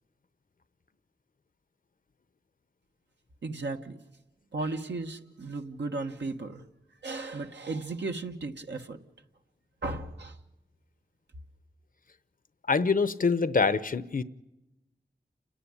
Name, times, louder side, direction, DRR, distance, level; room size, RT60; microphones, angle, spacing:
voice 1, 3.4-4.0 4.5-6.6 7.0-9.0 9.8-10.4, right 3 dB, 80° right, 1.3 m, -35 dB
voice 2, 12.7-14.2, left 4 dB, 50° left, 0.7 m, -25 dB
29.5 x 10.0 x 10.0 m
cardioid pair, 45°, 18 cm